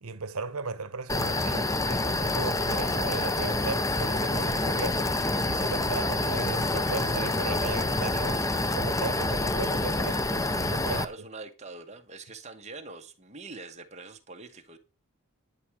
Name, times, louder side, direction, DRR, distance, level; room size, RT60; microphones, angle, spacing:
voice 1, 0.0-8.5 8.7-11.0, right 4 dB, 75° right, 1.2 m, -36 dB
sound 1, 1.1-11.0, left 2 dB, 15° left, 0.7 m, -27 dB
voice 2, 10.9-14.8, right 3 dB, 30° right, 1.7 m, -43 dB
11.0 x 9.1 x 4.8 m
head